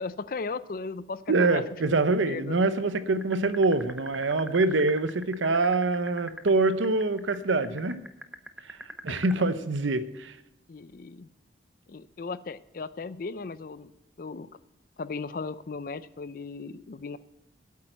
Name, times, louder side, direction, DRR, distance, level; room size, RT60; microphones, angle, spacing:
voice 1, 0.0-1.6 2.3-2.6 9.1-9.5 10.7-11.3 11.9-13.9 14.2-14.5 15.0-17.2, left 4 dB, 50° left, 16 dB, 0.4 m, -36 dB
voice 2, 1.3-8.0 8.6-8.8 9.0-10.4, right 3 dB, 85° right, 12 dB, 0.7 m, -25 dB
sound 1, 3.2-9.4, right 1 dB, 5° right, 0.6 m, -40 dB
8.6 x 8.4 x 7.8 m, 0.92 s
head